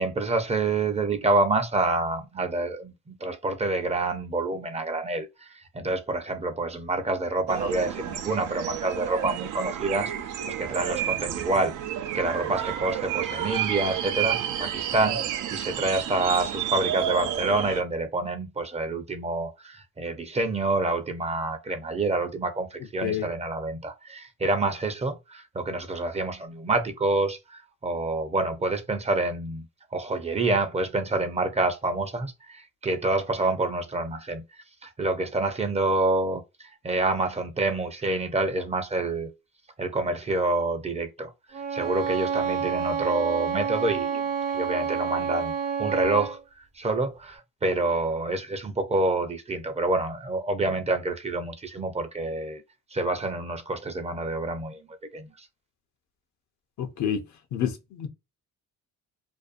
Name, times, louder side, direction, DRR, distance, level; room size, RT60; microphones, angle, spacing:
voice 1, 0.0-11.8 12.1-29.7 29.9-34.4 34.8-39.3 39.8-41.3 41.7-45.5 45.8-46.4 46.8-52.6 52.9-54.9 55.1-55.5, right 2 dB, 20° right, 0.5 m, -27 dB
sound 1, 7.5-17.8, right 10 dB, 80° right, 0.5 m, -30 dB
Bowed string instrument, 41.5-46.4, right 7 dB, 65° right, 0.9 m, -29 dB
voice 2, 56.8-57.2 57.5-58.1, left 9 dB, 70° left, 0.6 m, -28 dB
2.6 x 2.2 x 2.4 m
cardioid pair, 90°, 30 cm